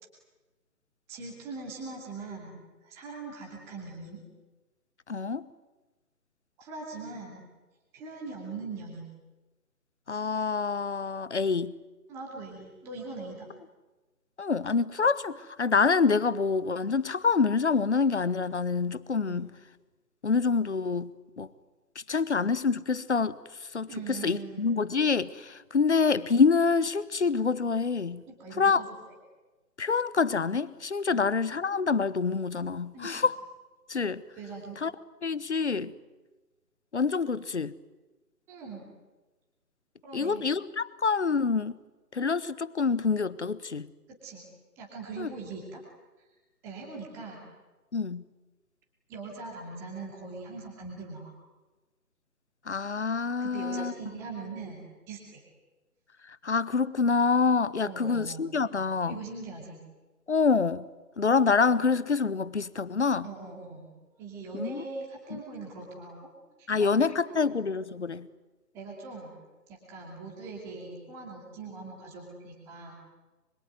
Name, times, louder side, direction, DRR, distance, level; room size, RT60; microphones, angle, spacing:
voice 1, 1.1-4.2 6.6-7.4 7.9-9.1 12.1-13.5 19.3-19.4 23.9-24.8 28.3-28.9 31.1-31.2 32.9-33.1 34.3-34.8 38.5-38.8 40.0-40.5 44.1-44.4 44.8-45.8 46.6-47.5 49.1-51.3 53.4-55.4 57.8-58.5 59.0-59.8 61.2-61.3 63.2-63.9 64.2-66.3 66.6-67.0 67.3-67.6 68.7-69.3 69.7-72.9, right 4 dB, 5° right, 2.6 m, -41 dB
voice 2, 5.1-5.5 10.1-11.7 14.4-19.5 20.2-21.1 21.4-21.5 22.1-23.4 23.7-28.2 28.6-28.8 29.8-33.4 33.9-34.2 34.8-34.9 35.2-35.9 36.9-37.7 40.1-41.7 42.1-43.9 45.2-45.3 47.9-48.2 52.7-53.9 56.3-59.2 60.3-60.8 61.2-63.3 64.5-64.8 65.3-65.4 66.7-68.3, left 5 dB, 45° left, 1.1 m, -26 dB
25.5 x 23.0 x 9.4 m
hypercardioid pair, 170°, 48 cm